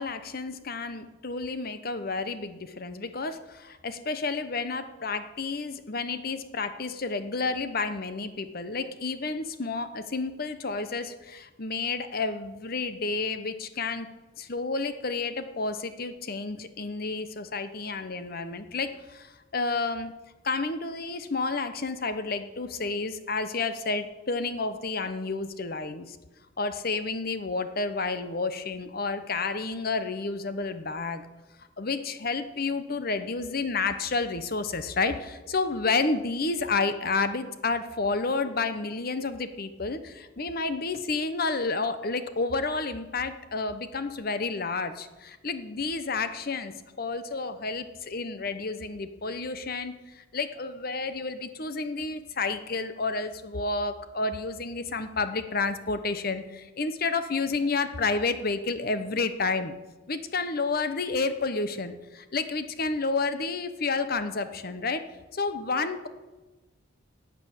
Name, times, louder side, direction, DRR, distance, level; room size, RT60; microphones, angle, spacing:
voice 1, 0.0-14.1 14.4-20.1 20.4-26.2 26.6-31.3 31.8-59.8 60.1-65.0 65.3-66.1, left 3 dB, 50° left, 11 dB, 1.0 m, -30 dB
12.0 x 8.6 x 8.8 m, 1.2 s
head